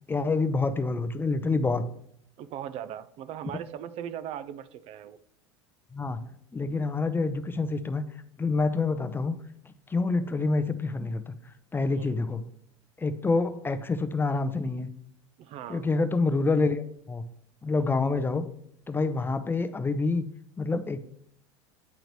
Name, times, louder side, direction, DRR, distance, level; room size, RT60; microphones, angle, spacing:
voice 1, 0.1-1.9 5.9-6.2 6.5-8.0 8.4-9.4 9.9-11.3 11.7-12.4 13.0-14.9 15.7-17.2 17.6-18.4 18.9-20.3 20.6-21.0, left 3 dB, 15° left, 10 dB, 0.5 m, -27 dB
voice 2, 2.4-5.2 11.9-12.2 15.4-15.9, right 10 dB, 45° right, 13 dB, 0.4 m, -39 dB
9.3 x 3.8 x 3.1 m, 0.68 s
hypercardioid pair, 80°, 14 cm